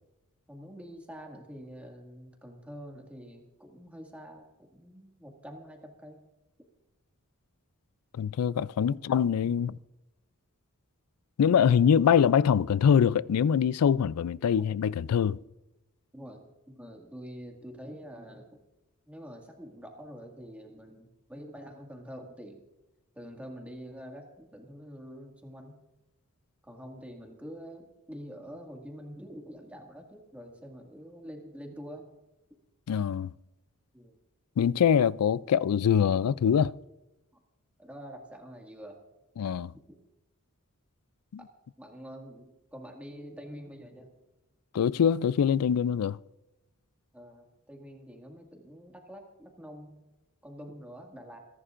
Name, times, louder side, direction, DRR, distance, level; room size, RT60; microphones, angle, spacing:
voice 1, 0.5-6.2 14.6-14.7 16.1-18.6 19.1-22.6 23.2-25.8 26.6-32.1 33.9-34.2 37.3-37.4 37.8-39.0 41.8-44.1 47.1-50.0 50.4-51.4, equal, 5° right, 2.0 m, -46 dB
voice 2, 8.2-9.8 11.4-15.4 32.9-33.3 34.6-36.7 39.4-39.7 44.7-46.2, left 8 dB, 85° left, 0.4 m, -24 dB
28.5 x 11.0 x 2.5 m
head